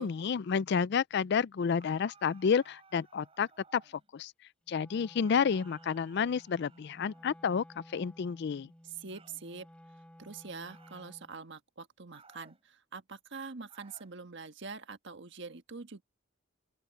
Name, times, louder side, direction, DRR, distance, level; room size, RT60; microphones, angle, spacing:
voice 1, 0.0-3.8 4.1-4.3 4.7-8.7, left 6 dB, 55° left, 0.4 m, -30 dB
sound 1, 1.8-4.1 5.2-7.5 9.1-9.5 10.7-11.1 12.1-12.6 13.7-14.2, right 5 dB, 30° right, 5.9 m, -60 dB
Wind instrument woodwind instrument, 4.7-11.4, equal, 5° left, 4.3 m, -56 dB
voice 2, 8.8-9.7 10.2-16.0, right 4 dB, 60° right, 1.5 m, -44 dB
open air
head